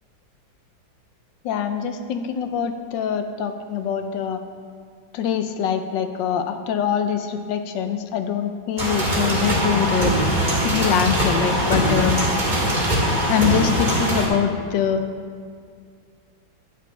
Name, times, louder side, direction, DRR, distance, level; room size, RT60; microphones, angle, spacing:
voice 1, 1.4-4.4 5.1-10.1 10.6-12.2 13.3-15.0, left 8 dB, 75° left, 8 dB, 1.2 m, -24 dB
sound 1, 8.8-14.3, equal, 25° right, 2.1 m, -21 dB
10.0 x 10.0 x 3.3 m, 2.1 s
omnidirectional pair, 2.2 m